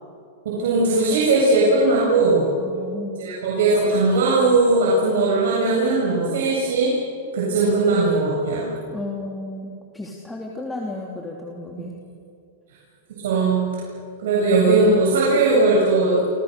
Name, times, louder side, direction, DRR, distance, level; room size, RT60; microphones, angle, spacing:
voice 1, 0.4-2.5 3.2-6.9 7.3-8.7 13.2-13.6 14.2-16.2, right 3 dB, 75° right, -5 dB, 7.7 m, -19 dB
voice 2, 2.6-3.2 8.9-11.9, left 2 dB, 10° left, -1 dB, 3.0 m, -33 dB
29.5 x 27.5 x 6.8 m, 2.5 s
hypercardioid pair, 130°, 0 cm